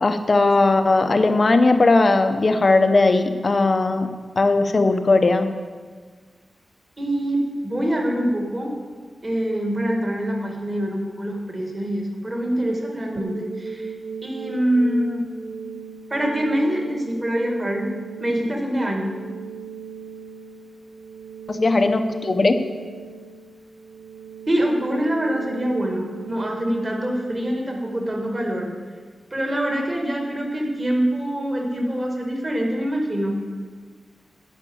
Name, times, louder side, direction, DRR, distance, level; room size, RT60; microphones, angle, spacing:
voice 1, 0.0-4.1 4.4-5.5 21.5-22.6, left 3 dB, 35° left, 7 dB, 0.7 m, -18 dB
voice 2, 7.0-8.7 9.2-13.9 14.2-15.2 16.1-17.9 18.2-19.1 24.5-28.7 29.3-33.4, right 1 dB, 25° right, 0 dB, 1.8 m, -24 dB
sound 1, 13.2-28.2, right 6 dB, 80° right, 0.6 m, -38 dB
10.5 x 5.9 x 8.5 m, 1.5 s
wide cardioid pair, 175°, 0 cm